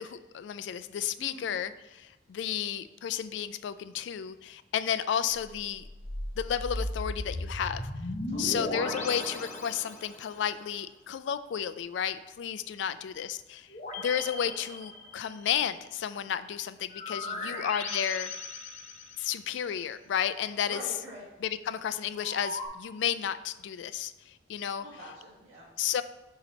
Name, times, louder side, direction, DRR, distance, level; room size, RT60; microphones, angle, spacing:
voice 1, 0.0-5.8 6.4-7.8 8.4-13.7 14.0-18.3 19.2-20.8 21.4-24.8 25.8-26.0, left 9 dB, 70° left, 13 dB, 0.3 m, -32 dB
voice 2, 1.1-1.5 8.3-8.6 17.2-17.6 20.6-21.2 24.5-25.6, equal, 30° right, -11 dB, 1.6 m, -46 dB
sound 1, 5.3-10.4 13.7-15.5 16.9-19.5 22.2-22.7, left 2 dB, 40° left, 0.7 m, -37 dB
6.9 x 2.9 x 5.2 m, 1.0 s
head